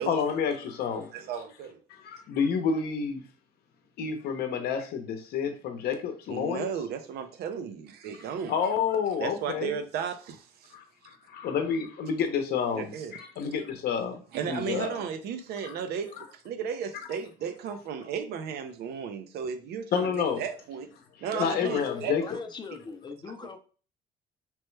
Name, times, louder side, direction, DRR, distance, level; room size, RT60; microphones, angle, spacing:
voice 1, 0.1-1.1 1.9-3.2 4.0-6.7 8.5-9.7 10.7-15.0 15.6-15.7 19.9-20.4 21.4-22.4, left 6 dB, 65° left, 0.7 m, -29 dB
voice 2, 1.1-1.8 6.3-8.5 9.2-10.7 12.7-13.1 14.3-20.9 21.2-22.1 23.4-23.5, right 7 dB, 70° right, 0.5 m, -34 dB
voice 3, 21.3-23.6, left 5 dB, 25° left, 0.5 m, -39 dB
3.1 x 2.2 x 3.1 m
cardioid pair, 110°, 17 cm